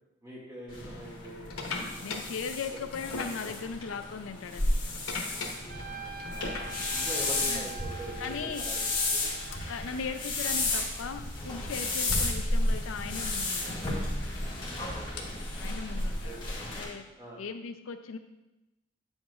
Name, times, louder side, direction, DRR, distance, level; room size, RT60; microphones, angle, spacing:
voice 1, 0.2-2.2 6.3-6.6 6.9-8.8 9.1-9.2 12.0-12.2 14.6-15.3 16.2-16.7 17.2-17.4, right 1 dB, 15° right, -5 dB, 2.0 m, -44 dB
sound 1, 0.7-7.6 8.3-8.5 9.5-9.6 11.0-11.1 11.3-11.4 12.1-12.2 14.0-17.2, left 3 dB, 90° left, 1.2 m, -41 dB
sound 2, 0.7-16.8, left 2 dB, 20° left, 1.7 m, -32 dB
voice 2, 2.0-4.8 7.4-7.7 8.2-8.7 9.5-13.8 15.6-16.4 16.8-17.0 17.4-18.2, left 5 dB, 70° left, 8 dB, 0.4 m, -38 dB
Trumpet, 5.7-10.4, right 4 dB, 40° right, 0.5 m, -44 dB
9.0 x 7.9 x 2.4 m, 1.0 s
head